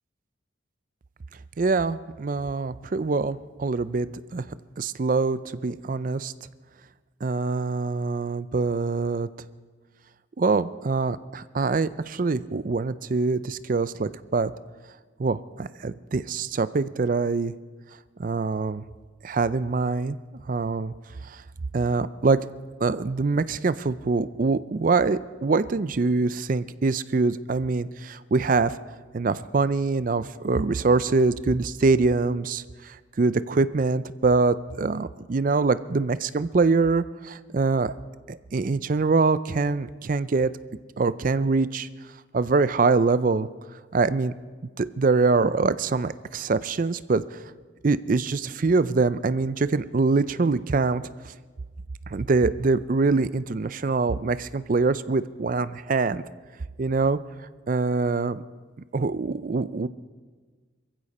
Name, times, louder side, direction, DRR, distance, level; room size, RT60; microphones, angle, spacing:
voice 1, 1.6-4.1 4.3-4.4 4.8-6.3 7.2-9.3 10.4-14.5 15.2-17.5 18.2-18.8 19.2-20.2 20.5-20.9 21.7-22.4 22.8-28.8 29.1-32.6 33.2-37.9 38.3-40.5 41.0-41.9 42.3-43.5 43.9-44.3 44.8-47.2 47.8-51.0 52.1-56.2 56.8-57.2 57.7-58.4 58.9-59.9, right 3 dB, 40° right, 15 dB, 0.4 m, -24 dB
21.5 x 15.5 x 4.2 m, 1.4 s
head